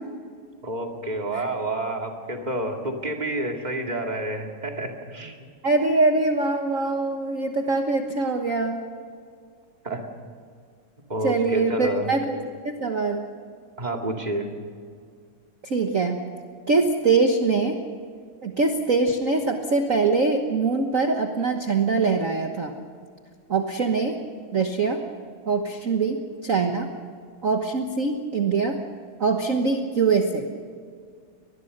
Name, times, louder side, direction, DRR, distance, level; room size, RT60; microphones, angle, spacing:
voice 1, 0.6-5.4 9.8-10.1 11.1-12.1 13.8-14.5, right 1 dB, 15° right, 2 dB, 2.1 m, -29 dB
voice 2, 5.6-8.8 11.2-12.4 12.6-13.2 15.6-16.2 16.7-17.8 18.4-22.7 23.5-24.1 24.5-25.0 25.5-26.9 27.4-28.8 29.2-30.5, right 4 dB, 55° right, 4 dB, 0.9 m, -23 dB
23.5 x 21.0 x 6.7 m, 2.1 s
omnidirectional pair, 3.3 m